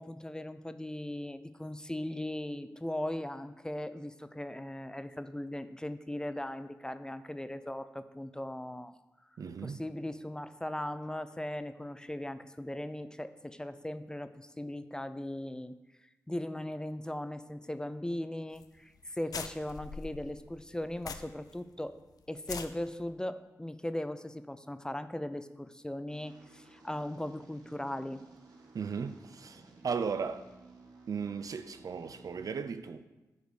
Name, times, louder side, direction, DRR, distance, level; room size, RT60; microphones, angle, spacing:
voice 1, 0.0-8.9 9.6-15.7 16.3-22.0 22.3-28.2, left 1 dB, 10° left, 0.5 m, -38 dB
voice 2, 9.4-9.8 28.7-30.5 31.1-33.1, right 6 dB, 65° right, 0.5 m, -36 dB
sound 1, 18.5-18.7 19.0-19.1 19.3-21.5 21.9-22.0 22.4-22.7, left 5 dB, 75° left, 0.5 m, -42 dB
sound 2, 26.1-32.5, right 3 dB, 85° right, 1.3 m, -56 dB
8.1 x 5.1 x 6.4 m
cardioid pair, 55°, 6 cm